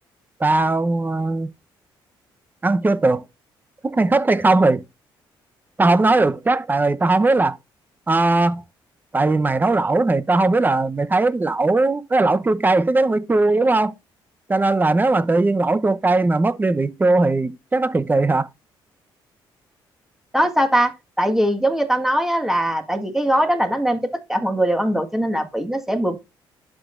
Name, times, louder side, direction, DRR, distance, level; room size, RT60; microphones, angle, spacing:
voice 1, 0.4-1.5 2.6-3.2 3.8-4.8 5.8-7.6 8.1-8.6 9.1-13.9 14.5-18.5, right 2 dB, 20° right, 0.9 m, -19 dB
voice 2, 20.3-24.0 24.3-26.2, right 1 dB, 5° right, 1.7 m, -21 dB
11.5 x 6.2 x 2.6 m
cardioid pair, 80°, 9 cm